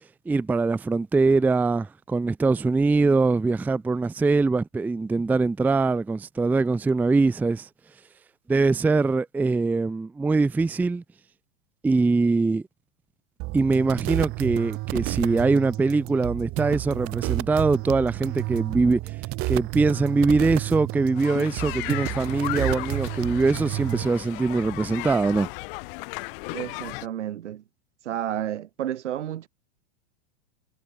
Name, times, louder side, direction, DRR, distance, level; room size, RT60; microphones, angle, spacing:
voice 1, 0.3-7.7 8.5-11.0 11.8-12.6 13.5-19.2 19.5-25.5, right 3 dB, 5° right, 0.5 m, -23 dB
sound 1, 13.4-24.1, right 22 dB, 40° right, 3.0 m, -31 dB
sound 2, 21.1-27.1, left 28 dB, 50° left, 3.0 m, -35 dB
voice 2, 26.5-27.6 28.0-29.5, right 11 dB, 80° right, 5.9 m, -31 dB
hypercardioid pair, 130°, 35 cm